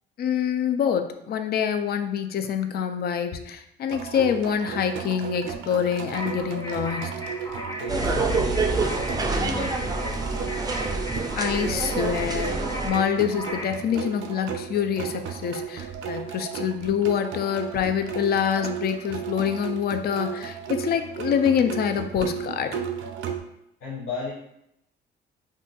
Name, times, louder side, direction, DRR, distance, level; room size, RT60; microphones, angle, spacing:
voice 1, 0.2-7.2 11.4-22.8, left 8 dB, 50° left, 8 dB, 0.4 m, -26 dB
sound 1, 3.9-23.4, right 7 dB, 80° right, 0.4 m, -35 dB
sound 2, 6.1-13.8, left 1 dB, 15° left, 0.7 m, -37 dB
voice 2, 7.8-10.7 23.8-24.3, left 3 dB, 85° left, -5 dB, 0.7 m, -36 dB
sound 3, 7.9-12.9, right 3 dB, 20° right, 0.4 m, -27 dB
2.6 x 2.5 x 3.8 m, 0.79 s
cardioid pair, 90°, 20 cm